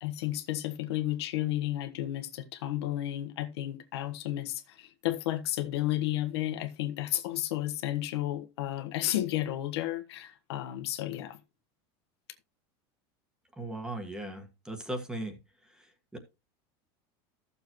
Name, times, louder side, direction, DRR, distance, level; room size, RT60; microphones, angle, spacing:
voice 1, 0.0-11.4, left 14 dB, 85° left, 1.3 m, -32 dB
voice 2, 13.6-15.4 15.7-16.2, right 1 dB, 5° right, 1.5 m, -38 dB
14.5 x 6.9 x 3.1 m
supercardioid pair, 165°, 13 cm